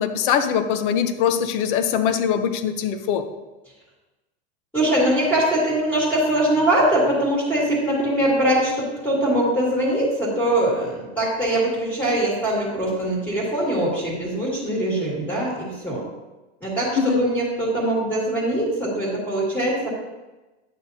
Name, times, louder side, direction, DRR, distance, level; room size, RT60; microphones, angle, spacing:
voice 1, 0.0-3.2 17.0-17.2, left 8 dB, 45° left, 8 dB, 0.9 m, -22 dB
voice 2, 4.7-16.0 16.6-19.9, right 1 dB, 5° left, -6 dB, 2.1 m, -22 dB
10.5 x 8.5 x 2.8 m, 1.1 s
supercardioid pair, 165°, 34 cm